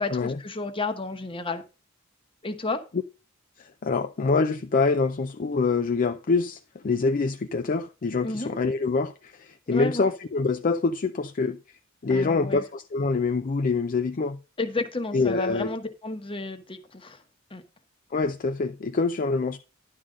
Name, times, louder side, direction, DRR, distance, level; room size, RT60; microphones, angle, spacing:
voice 1, 0.0-1.6 2.4-2.8 8.2-8.5 9.7-10.1 12.1-12.6 14.6-17.2 17.5-17.6, left 3 dB, 25° left, 1.1 m, -31 dB
voice 2, 3.8-6.6 6.8-11.6 12.0-14.4 15.1-15.7 18.1-19.6, left 4 dB, 40° left, 0.4 m, -25 dB
11.0 x 3.8 x 6.2 m
head